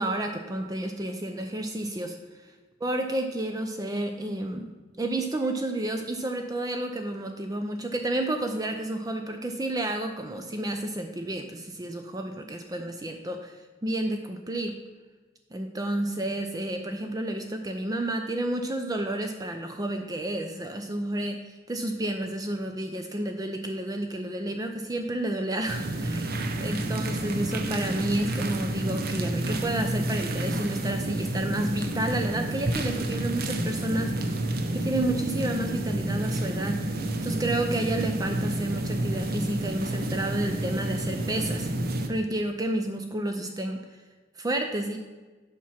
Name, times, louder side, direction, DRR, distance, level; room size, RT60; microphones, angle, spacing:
voice 1, 0.0-2.2 2.8-4.7 5.0-13.6 13.8-14.8 15.5-34.3 34.7-36.8 37.2-41.7 42.1-43.8 44.4-45.0, right 1 dB, 20° right, 5 dB, 0.5 m, -30 dB
sound 1, 25.7-42.1, right 1 dB, 55° right, 0.7 m, -30 dB
7.4 x 5.9 x 5.7 m, 1.3 s
head